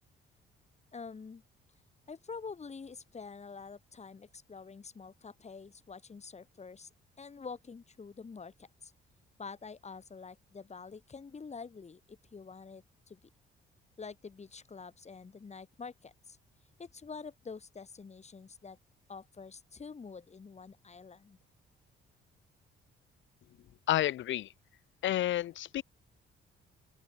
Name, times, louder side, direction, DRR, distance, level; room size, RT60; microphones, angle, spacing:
voice 1, 0.9-1.4 2.1-6.9 7.2-8.9 9.4-13.2 14.0-16.4 16.8-18.8 19.1-21.4, left 5 dB, 35° left, 5.3 m, -47 dB
voice 2, 23.9-24.5 25.0-25.8, left 13 dB, 75° left, 1.1 m, -30 dB
open air
cardioid pair, 90°, 20 cm